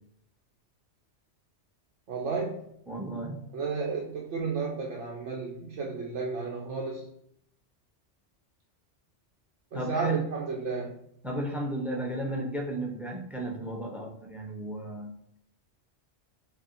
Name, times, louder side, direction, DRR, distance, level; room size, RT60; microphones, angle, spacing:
voice 1, 2.1-2.6 3.5-7.1 9.7-11.0, right 4 dB, 85° right, -2 dB, 1.0 m, -32 dB
voice 2, 2.9-3.4 9.7-10.3 11.2-15.1, right 1 dB, ahead, 0 dB, 0.3 m, -34 dB
4.4 x 2.1 x 3.8 m, 0.72 s
omnidirectional pair, 1.2 m